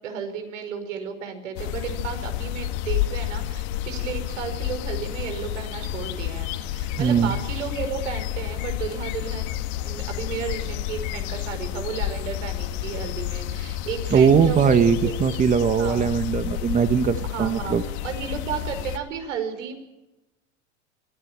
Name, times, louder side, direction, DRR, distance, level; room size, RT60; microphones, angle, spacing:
voice 1, 0.0-15.2 15.8-16.1 17.2-17.7 18.0-19.8, right 7 dB, 90° right, 7 dB, 5.4 m, -33 dB
sound 1, 1.6-19.0, left 13 dB, 60° left, 1.9 m, -30 dB
voice 2, 7.0-7.3 14.1-17.8, right 6 dB, 20° right, 10 dB, 1.3 m, -20 dB
24.5 x 15.0 x 8.9 m, 1.0 s
supercardioid pair, 130°, 36 cm